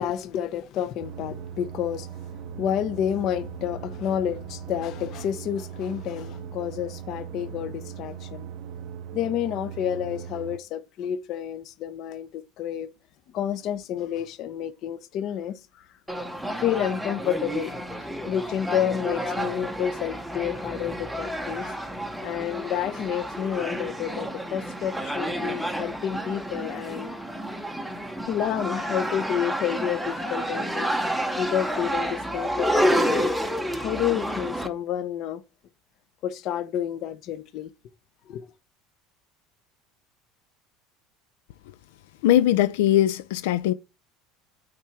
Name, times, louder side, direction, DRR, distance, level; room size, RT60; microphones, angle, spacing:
voice 1, 0.0-8.5 9.1-12.9 13.3-15.8 16.6-21.8 22.2-27.1 28.3-30.9 31.4-33.3 33.8-35.4 36.2-37.7 38.3-38.5, left 10 dB, 40° left, 0.6 m, -30 dB
sound 1, 1.0-10.6, right 9 dB, 50° right, 0.5 m, -39 dB
sound 2, 16.1-34.7, equal, ahead, 0.7 m, -30 dB
voice 2, 42.2-43.7, left 12 dB, 90° left, 0.4 m, -20 dB
8.8 x 3.6 x 4.3 m
cardioid pair, 170°, 0 cm